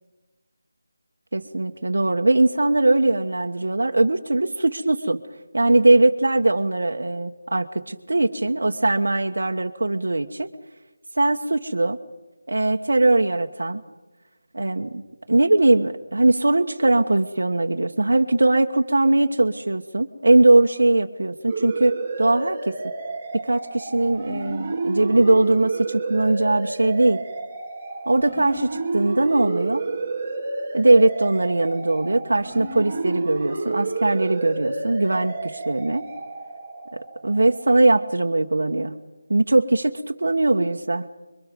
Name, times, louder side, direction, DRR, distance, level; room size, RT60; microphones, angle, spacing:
voice 1, 1.3-5.2 5.5-10.5 11.1-12.0 12.5-13.8 14.5-15.0 15.3-22.8 23.4-27.2 28.1-29.8 30.7-36.1 36.9-38.9 39.3-41.1, right 2 dB, 90° right, 4 dB, 1.3 m, -20 dB
sound 1, 21.5-37.9, right 3 dB, 15° right, 2.0 m, -30 dB
25.5 x 23.5 x 5.4 m, 1.1 s
figure-of-eight pair, 180°, 0 cm